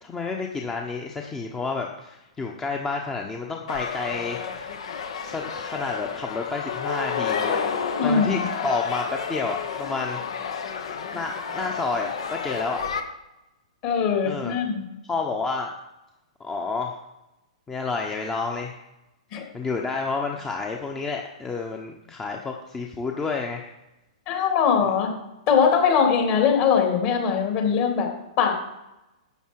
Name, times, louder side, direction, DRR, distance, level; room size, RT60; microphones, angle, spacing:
voice 1, 0.0-4.7 5.1-7.6 8.0-10.2 11.1-12.8 14.2-14.5 15.0-15.7 16.4-17.0 17.7-18.8 19.5-23.7 24.8-24.9, left 4 dB, 15° left, 1 dB, 1.1 m, -30 dB
sound 1, 3.7-13.0, left 6 dB, 65° left, 1.3 m, -31 dB
voice 2, 8.0-8.5 13.8-14.8 19.3-19.4 24.3-25.1 25.5-28.1 28.4-28.5, left 6 dB, 40° left, 1 dB, 3.3 m, -21 dB
12.5 x 8.3 x 4.8 m, 0.94 s
figure-of-eight pair, 110°, 3 cm